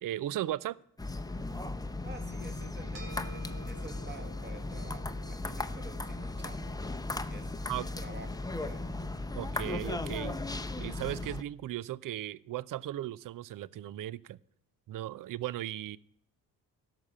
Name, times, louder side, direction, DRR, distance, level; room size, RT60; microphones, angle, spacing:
voice 1, 0.0-0.8 7.7-7.9 9.3-10.3 10.8-14.4 14.9-16.0, right 13 dB, 45° right, 0.5 m, -36 dB
sound 1, 1.0-11.4, left 2 dB, 10° left, 0.8 m, -37 dB
voice 2, 2.0-6.8 7.3-7.5 7.8-8.8, right 2 dB, 25° right, 2.0 m, -50 dB
sound 2, 2.9-11.5, right 4 dB, 70° right, 2.3 m, -55 dB
12.5 x 5.9 x 8.3 m
hypercardioid pair, 45°, 45 cm